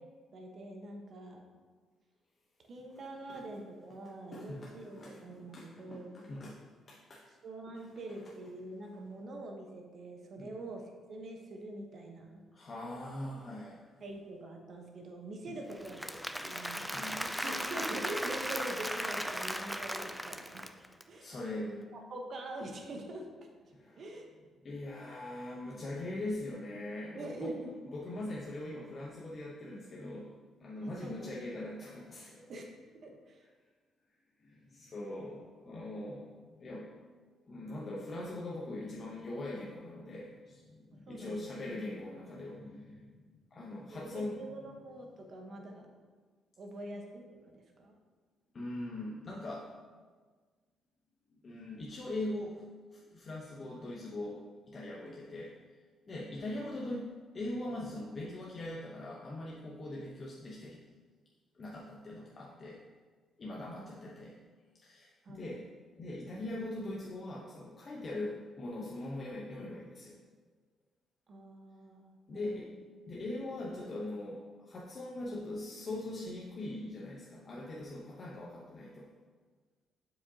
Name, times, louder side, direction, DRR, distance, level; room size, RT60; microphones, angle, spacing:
voice 1, 0.3-1.5 2.7-6.3 7.4-10.8 11.1-12.4 14.0-16.0 16.4-16.8 17.2-20.7 21.1-21.3 21.6-21.8 22.1-23.3 23.6-24.3 27.1-27.7 30.8-31.4 32.5-32.7 33.0-33.4 41.1-41.5 43.9-45.8 46.6-47.9 63.7-64.0 65.2-65.5 71.3-72.7, right 2 dB, 55° right, 2 dB, 1.0 m, -44 dB
voice 2, 4.3-7.3 7.7-7.8 10.4-10.5 12.5-13.8 15.5-15.6 16.9-17.2 21.2-21.7 23.7-24.0 24.6-27.5 27.9-32.5 34.4-36.9 37.5-44.4 48.5-49.7 51.4-55.5 56.1-60.8 61.5-62.8 63.4-64.4 64.8-65.7 66.0-70.2 72.3-72.7 73.0-79.1, left 1 dB, 40° left, -3 dB, 0.8 m, -41 dB
Applause / Crowd, 15.7-21.0, equal, ahead, 0.3 m, -37 dB
7.2 x 4.9 x 2.8 m, 1.5 s
cardioid pair, 90°, 0 cm